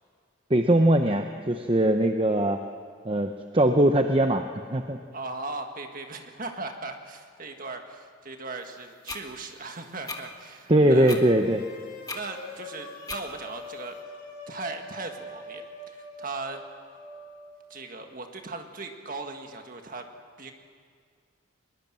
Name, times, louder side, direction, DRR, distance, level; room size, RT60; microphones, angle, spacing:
voice 1, 0.5-2.6 3.0-4.4 4.7-5.0 10.7-11.6, right 1 dB, 25° right, 6 dB, 0.7 m, -21 dB
voice 2, 5.1-11.2 12.1-14.0 14.5-16.6 17.7-20.1 20.4-20.5, right 3 dB, 40° right, 5 dB, 1.8 m, -38 dB
sound 1, 9.1-9.2 10.1-10.2 11.1-11.2 12.1-12.2 13.1-13.2, left 3 dB, 15° left, 1.5 m, -35 dB
sound 2, 11.4-17.5, left 1 dB, 50° left, 5.3 m, -44 dB
21.5 x 21.5 x 7.6 m, 2.1 s
head